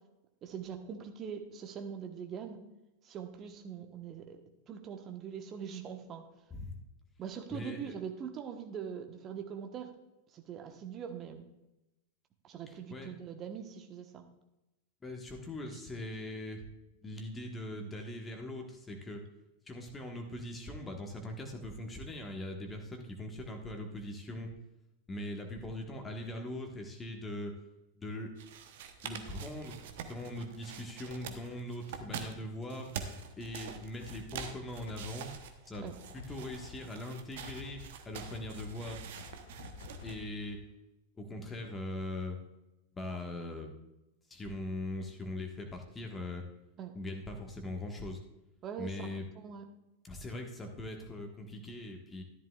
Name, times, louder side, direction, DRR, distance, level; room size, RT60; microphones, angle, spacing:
voice 1, 0.4-2.6 3.0-4.4 4.7-6.2 7.2-9.9 10.3-11.5 12.4-14.2 15.7-15.8 35.8-35.9 46.8-46.9 48.6-49.1 49.3-49.6, right 7 dB, 30° right, 5 dB, 1.2 m, -42 dB
voice 2, 7.5-7.9 12.9-13.1 15.0-16.7 17.0-19.2 19.7-24.5 25.1-27.6 28.0-28.3 29.0-32.9 33.4-35.3 35.7-35.9 36.1-39.0 40.0-40.6 41.2-42.4 42.9-43.7 44.3-46.4 46.9-48.2 48.8-49.2 50.0-52.2, left 1 dB, 15° left, 3 dB, 1.5 m, -41 dB
sound 1, 28.4-40.2, right 7 dB, 55° right, 0.9 m, -46 dB
sound 2, 34.0-40.8, left 6 dB, 60° left, 0.7 m, -51 dB
13.0 x 11.0 x 2.4 m, 0.94 s
figure-of-eight pair, 90°, 0 cm